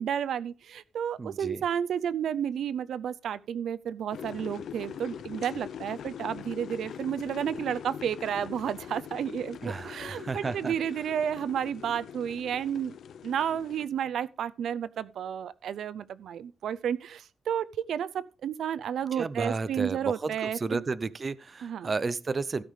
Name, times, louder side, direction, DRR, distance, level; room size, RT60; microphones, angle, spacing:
voice 1, 0.0-13.0 13.2-20.8 21.6-21.9, right 9 dB, 75° right, 0.5 m, -32 dB
voice 2, 1.2-1.6 9.6-10.7 19.1-22.6, right 4 dB, 25° right, 0.6 m, -32 dB
sound 1, 4.1-13.9, left 8 dB, 70° left, 0.6 m, -42 dB
16.0 x 5.6 x 5.1 m
wide cardioid pair, 175°, 0 cm